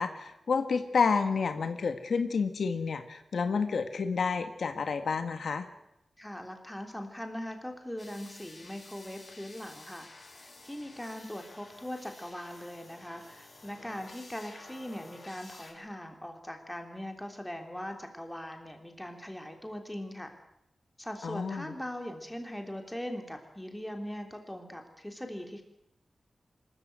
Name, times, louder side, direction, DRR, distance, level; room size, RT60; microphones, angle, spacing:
voice 1, 0.0-5.7 21.2-21.7, left 5 dB, 85° left, 8 dB, 1.7 m, -30 dB
voice 2, 6.2-20.3 21.0-25.6, left 1 dB, 5° left, 4 dB, 3.3 m, -41 dB
sound 1, 8.0-15.7, left 2 dB, 45° left, 5.5 m, -52 dB
25.0 x 14.0 x 9.4 m, 0.82 s
wide cardioid pair, 125°, 0 cm